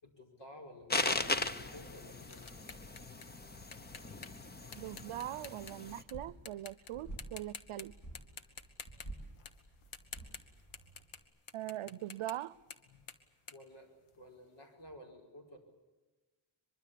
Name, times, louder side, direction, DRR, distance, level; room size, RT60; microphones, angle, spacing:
voice 1, 0.0-2.5 8.3-8.4 11.8-11.9 13.5-13.9 14.2-15.6, left 1 dB, 55° left, 5.3 m, -53 dB
sound 1, 0.9-6.0, left 2 dB, 20° left, 0.8 m, -38 dB
sound 2, 2.1-6.1 6.5-6.9 7.2-7.8 8.1-14.5, left 6 dB, 80° left, 1.9 m, -51 dB
voice 2, 4.8-7.9 11.5-12.6, right 14 dB, 80° right, 0.7 m, -41 dB
sound 3, 6.0-11.2, right 2 dB, 35° left, 7.6 m, -50 dB
23.5 x 23.0 x 8.5 m
wide cardioid pair, 175°, 50 cm